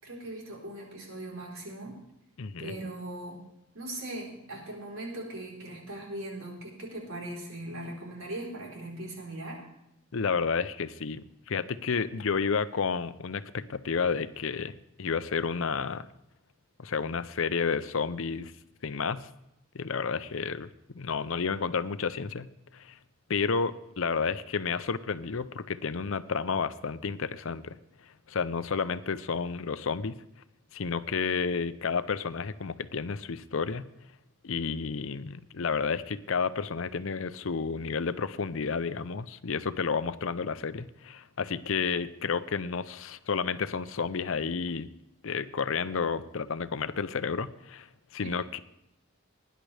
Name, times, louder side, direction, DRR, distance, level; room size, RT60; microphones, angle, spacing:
voice 1, 0.0-2.0 2.6-3.4 3.7-9.7, right 1 dB, 75° right, -1 dB, 3.9 m, -39 dB
voice 2, 2.4-2.7 10.1-14.7 15.0-16.1 16.8-18.5 18.8-19.3 19.7-20.7 20.9-22.5 22.7-23.0 23.3-27.8 28.3-30.2 30.7-33.9 34.4-44.9 45.2-47.9 48.1-48.6, left 5 dB, 65° left, 14 dB, 0.6 m, -31 dB
19.0 x 10.5 x 3.3 m, 0.84 s
head